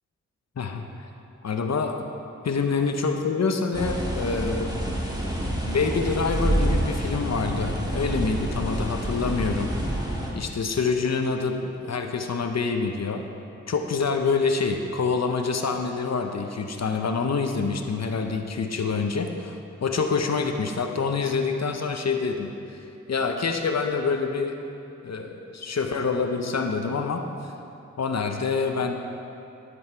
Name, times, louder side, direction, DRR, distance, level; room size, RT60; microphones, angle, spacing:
voice 1, 1.4-2.1 2.4-4.7 5.7-9.7 10.3-13.2 13.7-24.6 25.0-27.2 28.0-28.9, left 4 dB, 65° left, 5 dB, 0.8 m, -26 dB
sound 1, 3.7-10.3, right 1 dB, 15° right, 1.9 m, -27 dB
12.5 x 8.1 x 4.5 m, 2.7 s
cardioid pair, 55°, 29 cm